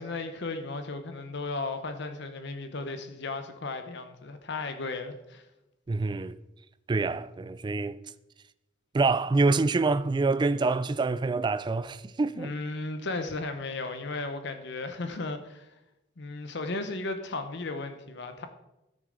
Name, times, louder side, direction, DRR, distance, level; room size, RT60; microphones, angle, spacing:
voice 1, 0.0-5.4 12.3-15.7 16.2-18.5, left 3 dB, 60° left, 0.8 m, -35 dB
voice 2, 5.9-6.4 6.9-8.0 8.9-12.5, right 3 dB, 25° right, 0.3 m, -26 dB
14.5 x 6.5 x 3.9 m
head